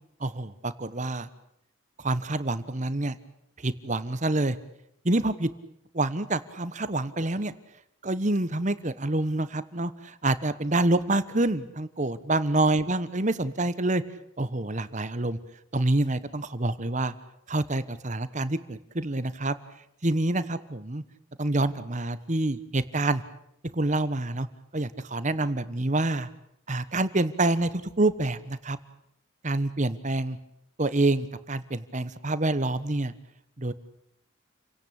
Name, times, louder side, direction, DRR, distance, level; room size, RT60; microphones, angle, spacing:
voice 1, 0.2-1.3 2.0-3.2 3.6-4.6 5.0-5.5 5.9-7.5 8.0-14.0 14.4-15.4 15.7-17.1 17.5-19.5 20.0-21.0 21.4-23.2 23.7-24.5 24.7-26.3 26.7-28.8 29.4-30.4 30.8-33.1 33.6-33.7, right 2 dB, 35° right, 14 dB, 1.1 m, -27 dB
29.5 x 17.5 x 8.8 m, 0.77 s
head